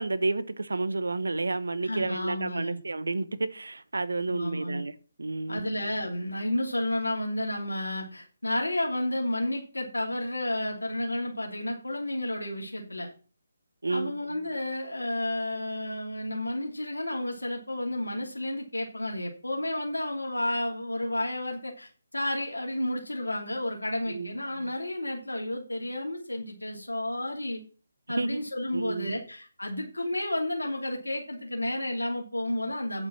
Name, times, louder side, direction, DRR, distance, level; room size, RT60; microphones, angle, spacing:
voice 1, 0.0-5.7 13.8-14.2 24.1-24.3 28.2-28.4 28.7-29.1, right 3 dB, 75° right, 1.1 m, -31 dB
voice 2, 1.8-2.8 4.3-4.8 5.5-13.1 13.9-27.6 28.1-33.1, left 1 dB, 90° left, 2.8 m, -31 dB
9.1 x 7.3 x 6.1 m
figure-of-eight pair, 150°, 0 cm